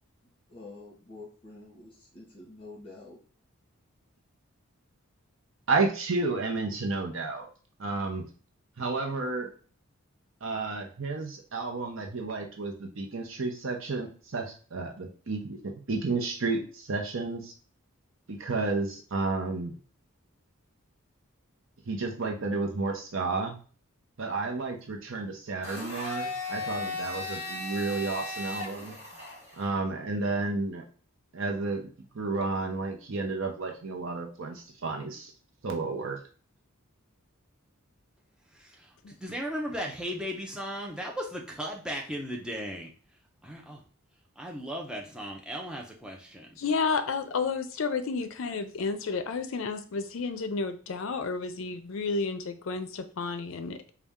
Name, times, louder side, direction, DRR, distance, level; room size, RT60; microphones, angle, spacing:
voice 1, 0.2-3.2, left 2 dB, 25° left, -4 dB, 1.6 m, -48 dB
voice 2, 5.7-7.5 7.8-8.3 8.8-9.5 10.4-17.5 18.3-19.8 21.9-23.6 24.2-29.0 29.6-30.8 31.3-31.9 32.1-35.3 35.6-36.2, right 3 dB, 60° right, 2 dB, 0.7 m, -31 dB
Domestic sounds home sounds, 25.6-29.7, left 2 dB, 30° right, 1.4 m, -36 dB
voice 3, 39.1-42.9 43.4-43.8 44.4-46.5, equal, 5° right, 0 dB, 0.6 m, -36 dB
voice 4, 46.6-53.9, left 4 dB, 65° left, 9 dB, 0.5 m, -31 dB
4.1 x 2.3 x 3.6 m, 0.39 s
head